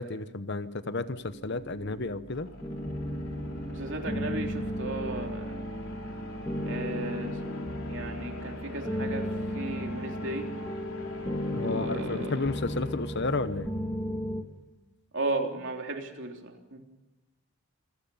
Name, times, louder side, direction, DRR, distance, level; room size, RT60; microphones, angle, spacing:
voice 1, 0.0-2.5 11.5-13.7, left 3 dB, 50° left, 13 dB, 0.9 m, -32 dB
sound 1, 0.7-13.8, equal, 70° left, 3.9 m, -44 dB
sound 2, 2.6-14.4, left 1 dB, 15° left, 2.2 m, -34 dB
voice 2, 3.7-5.6 6.7-7.4 7.9-10.5 11.5-12.4 15.1-16.8, right 2 dB, 55° right, 2 dB, 3.5 m, -35 dB
27.5 x 17.0 x 5.7 m, 1.0 s
head